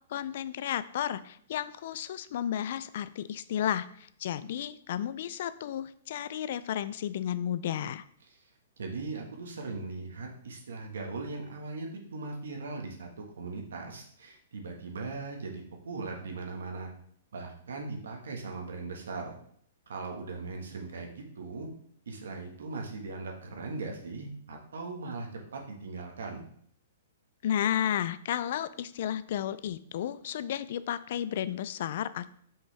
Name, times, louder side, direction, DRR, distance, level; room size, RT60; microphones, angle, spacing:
voice 1, 0.1-8.0 27.4-32.3, left 10 dB, 55° left, 15 dB, 0.4 m, -33 dB
voice 2, 8.8-13.1 13.4-16.9 17.3-19.3 19.9-21.7 22.0-26.4, right 3 dB, 85° right, 2 dB, 1.5 m, -39 dB
5.6 x 5.3 x 3.4 m, 0.63 s
hypercardioid pair, 150°, 0 cm